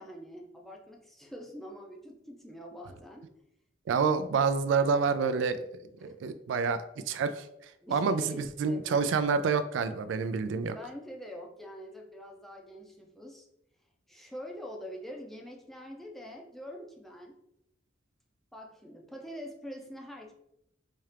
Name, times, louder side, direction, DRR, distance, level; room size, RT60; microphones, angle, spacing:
voice 1, 0.0-3.3 6.0-6.1 7.8-8.4 8.7-9.1 10.7-13.5 14.1-17.4 18.5-20.3, equal, ahead, 0 dB, 0.5 m, -45 dB
voice 2, 3.9-7.5 7.9-10.8, right 5 dB, 85° right, 11 dB, 0.3 m, -28 dB
4.2 x 2.4 x 3.2 m, 0.78 s
head